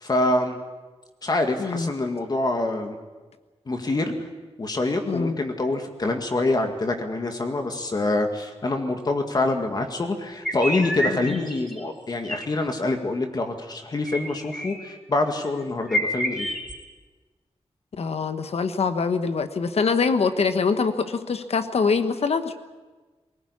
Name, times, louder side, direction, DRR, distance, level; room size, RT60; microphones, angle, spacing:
voice 1, 0.0-0.6 1.2-3.0 3.7-4.1 4.6-16.5, left 2 dB, 40° left, 5 dB, 2.0 m, -25 dB
voice 2, 1.6-1.9 5.1-5.4 11.1-11.4 17.9-22.5, left 5 dB, 70° left, 9 dB, 1.2 m, -24 dB
sound 1, 10.4-11.8 12.2-12.5 14.1-14.9 15.4-15.5 15.8-16.7, equal, ahead, 4.5 m, -29 dB
21.0 x 19.0 x 9.8 m, 1.3 s
wide cardioid pair, 175°, 11 cm